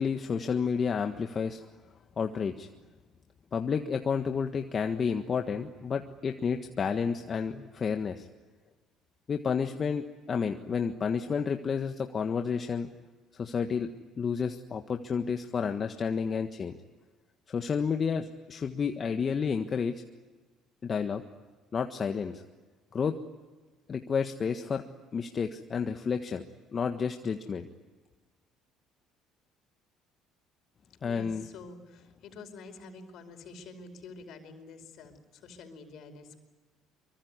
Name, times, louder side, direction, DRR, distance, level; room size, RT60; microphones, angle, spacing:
voice 1, 0.0-1.6 2.2-2.7 3.5-8.3 9.3-12.9 13.3-13.9 14.2-16.8 17.5-20.0 20.8-21.2 21.7-22.4 22.9-23.2 23.9-24.8 25.1-26.4 26.7-27.7 31.0-31.5, left 6 dB, 40° left, 6 dB, 1.5 m, -30 dB
voice 2, 31.0-36.4, left 3 dB, 65° left, 6 dB, 5.0 m, -48 dB
24.5 x 24.0 x 9.7 m, 1.3 s
hypercardioid pair, 65°, 0 cm